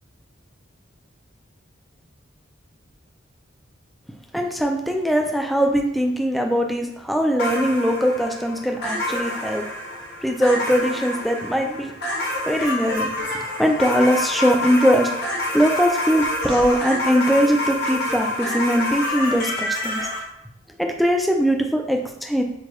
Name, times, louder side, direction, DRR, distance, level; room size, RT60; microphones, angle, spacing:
voice 1, 4.3-9.6 10.2-11.9 12.5-13.1 13.6-15.1 15.5-20.1 20.8-22.4, equal, ahead, 2 dB, 0.3 m, -21 dB
sound 1, 7.4-20.2, left 1 dB, 55° left, 0.9 m, -27 dB
4.5 x 2.3 x 3.0 m, 0.83 s
head